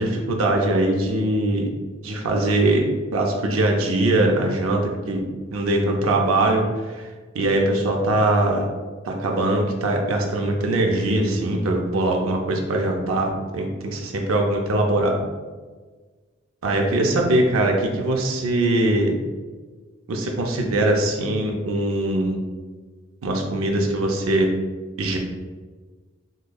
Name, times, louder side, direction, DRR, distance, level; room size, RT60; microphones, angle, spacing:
voice 1, 0.0-1.7 2.0-4.8 5.1-5.2 5.5-7.1 7.3-8.7 9.1-15.2 16.6-19.1 20.1-22.4 23.2-24.5 25.0-25.2, right 1 dB, 85° right, 2 dB, 0.5 m, -21 dB
4.9 x 2.0 x 2.2 m, 1.4 s
head